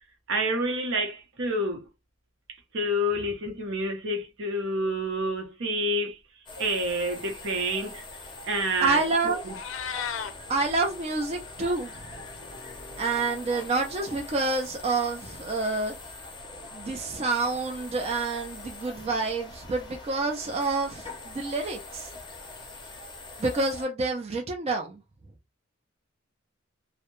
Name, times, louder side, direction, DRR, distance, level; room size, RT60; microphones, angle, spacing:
voice 1, 0.3-1.9 2.7-6.2 6.6-8.0 8.4-9.0 9.5-9.6, equal, 65° right, 0.7 m, -28 dB
sound 1, 6.5-23.9, left 2 dB, 25° left, 0.6 m, -43 dB
voice 2, 8.8-9.4 10.5-12.0 13.0-16.0 16.5-22.1 23.4-25.0, right 3 dB, 30° right, 0.4 m, -28 dB
Meow, 9.3-10.3, left 7 dB, 70° left, 0.4 m, -34 dB
2.2 x 2.0 x 2.9 m
head